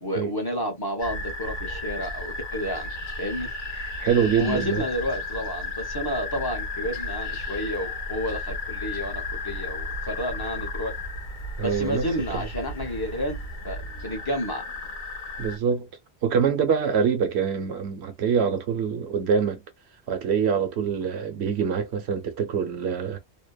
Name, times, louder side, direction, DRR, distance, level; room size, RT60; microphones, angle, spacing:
voice 1, 0.0-2.9 3.2-3.5 4.3-10.9 11.6-13.4 13.6-14.6, left 1 dB, 25° left, 0.8 m, -30 dB
sound 1, 1.0-15.6, left 2 dB, 50° left, 0.8 m, -34 dB
voice 2, 4.0-4.8 11.6-12.5 15.4-15.9 16.2-19.6 20.1-23.2, right 7 dB, 75° right, 1.0 m, -25 dB
2.8 x 2.1 x 2.2 m
omnidirectional pair, 1.1 m